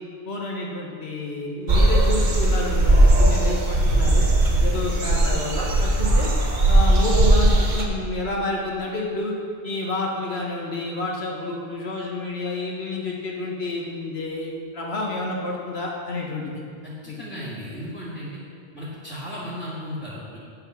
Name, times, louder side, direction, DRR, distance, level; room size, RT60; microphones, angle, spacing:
voice 1, 0.2-4.2 4.6-6.3 6.7-9.3 9.6-16.6 17.0-17.2, left 2 dB, 80° left, -2 dB, 1.6 m, -29 dB
sound 1, 1.7-7.8, right 1 dB, 50° right, 1.1 m, -18 dB
voice 2, 16.8-18.4 18.7-20.4, equal, ahead, -9 dB, 2.0 m, -35 dB
8.8 x 5.8 x 5.8 m, 2.2 s
omnidirectional pair, 1.1 m